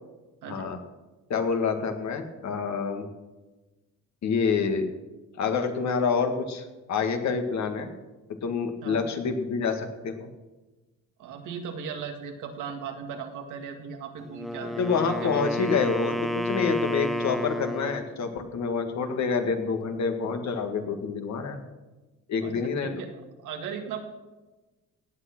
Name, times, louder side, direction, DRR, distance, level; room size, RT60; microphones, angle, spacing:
voice 1, 0.5-0.8 1.3-3.1 4.2-4.9 5.4-7.9 8.4-10.3 14.6-21.6 22.3-23.0, left 5 dB, 65° left, 5 dB, 2.0 m, -27 dB
voice 2, 11.2-14.7 15.1-15.5 22.4-23.1 23.4-24.0, right 6 dB, 90° right, 4 dB, 2.0 m, -37 dB
Wind instrument woodwind instrument, 14.2-18.1, left 1 dB, ahead, 0.5 m, -31 dB
17.5 x 8.5 x 6.1 m, 1.2 s
cardioid pair, 90°, 30 cm